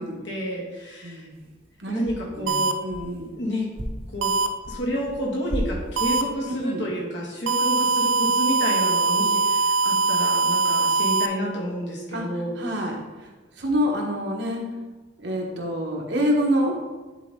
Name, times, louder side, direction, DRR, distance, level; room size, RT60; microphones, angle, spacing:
voice 1, 0.0-1.3 1.9-2.8 3.4-3.7 4.1-4.3 4.7-12.5, equal, 65° left, -4 dB, 2.1 m, -30 dB
voice 2, 1.0-1.4 1.8-2.0 2.4-3.3 6.6-6.9 12.1-12.2 12.6-13.3 13.6-14.7 15.2-16.7, equal, 60° right, 0 dB, 1.3 m, -27 dB
sound 1, 1.3-1.7 2.0-3.4 3.7-5.2 5.5-6.4, equal, 30° right, 0.7 m, -35 dB
sound 2, 2.5-2.7 4.2-4.5 6.0-6.2 7.5-11.3, right 3 dB, 80° right, 0.5 m, -22 dB
10.5 x 4.1 x 3.8 m, 1.3 s
head